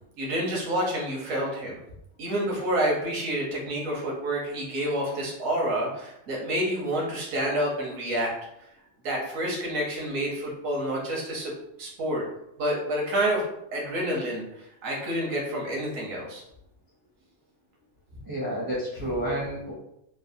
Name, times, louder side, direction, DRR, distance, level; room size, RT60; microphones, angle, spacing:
voice 1, 0.2-1.8 2.2-8.3 9.0-11.5 11.8-12.2 12.6-16.4, right 1 dB, 85° right, -2 dB, 1.3 m, -28 dB
voice 2, 18.3-19.7, right 1 dB, 30° right, -6 dB, 0.4 m, -30 dB
3.2 x 2.2 x 2.6 m, 0.80 s
omnidirectional pair, 1.3 m